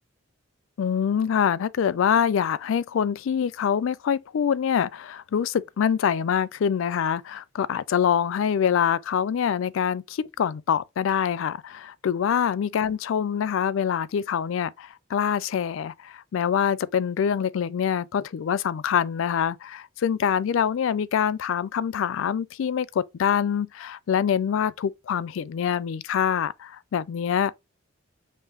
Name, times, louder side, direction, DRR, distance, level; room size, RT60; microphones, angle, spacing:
voice 1, 0.8-27.6, left 8 dB, 65° left, 0.3 m, -25 dB
5.3 x 2.8 x 3.5 m
head